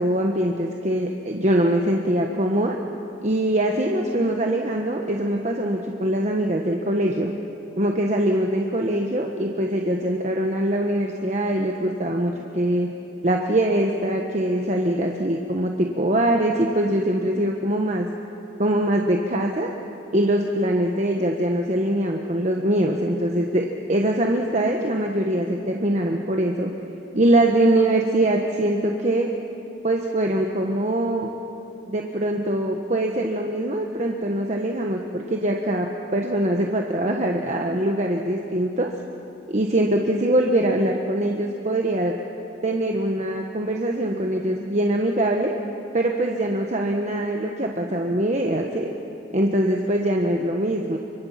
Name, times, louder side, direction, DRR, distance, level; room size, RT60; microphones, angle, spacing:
voice 1, 0.0-2.8 3.2-7.3 7.8-12.9 13.2-18.1 18.6-19.7 20.1-26.7 27.1-29.3 29.8-31.3 31.9-38.9 39.5-42.1 42.6-45.5 45.9-48.9 49.3-51.0, right 1 dB, 40° right, 1 dB, 1.3 m, -23 dB
29.5 x 25.0 x 5.8 m, 2.9 s
head